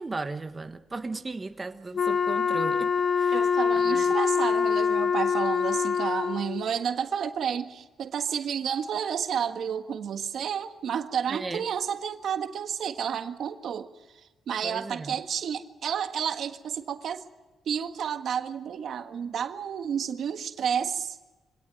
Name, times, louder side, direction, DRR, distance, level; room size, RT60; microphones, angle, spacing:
voice 1, 0.0-2.9 3.2-3.5 3.9-4.0 11.3-11.6 14.6-15.1, right 3 dB, 25° right, 7 dB, 1.3 m, -36 dB
Wind instrument woodwind instrument, 2.0-6.6, left 6 dB, 55° left, 1.3 m, -25 dB
voice 2, 3.3-17.2 17.6-21.2, right 8 dB, 70° right, 7 dB, 1.6 m, -31 dB
25.0 x 17.5 x 9.1 m, 1.2 s
cardioid pair, 85°, 0 cm